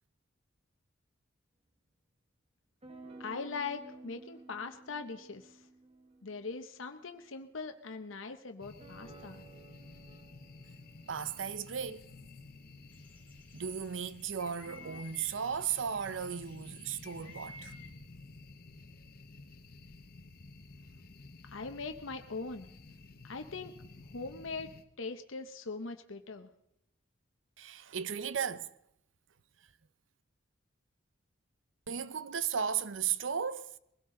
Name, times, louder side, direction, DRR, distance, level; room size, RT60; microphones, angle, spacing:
sound 1, 2.8-7.2 8.8-13.3 14.6-15.0, right 3 dB, 30° right, 1.4 m, -55 dB
voice 1, 3.2-5.7 6.2-9.4 21.4-22.7 23.2-23.8 24.1-24.7 25.0-26.5, left 4 dB, 75° left, 0.9 m, -41 dB
sound 2, 8.6-24.8, left 3 dB, 50° left, 1.1 m, -53 dB
voice 2, 11.1-12.1 13.5-17.7 27.6-28.7 31.9-33.7, right 7 dB, 70° right, 0.6 m, -35 dB
sound 3, 12.9-17.9, left 3 dB, 10° left, 3.3 m, -55 dB
22.0 x 16.5 x 3.8 m
head